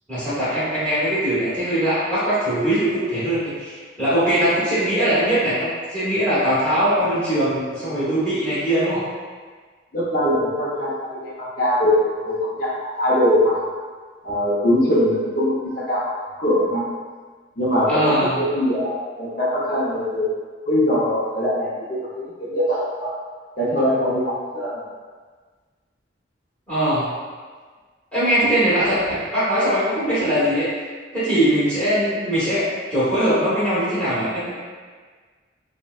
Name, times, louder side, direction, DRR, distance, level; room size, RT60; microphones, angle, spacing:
voice 1, 0.1-9.0 17.9-18.4 26.7-27.1 28.1-30.7 31.1-34.5, right 1 dB, 5° left, -13 dB, 1.0 m, -21 dB
voice 2, 9.9-13.7 14.2-16.1 16.4-16.9 17.6-20.3 20.7-23.1 23.6-24.8, left 1 dB, 45° left, -9 dB, 0.6 m, -22 dB
3.8 x 2.1 x 2.3 m, 1.5 s
head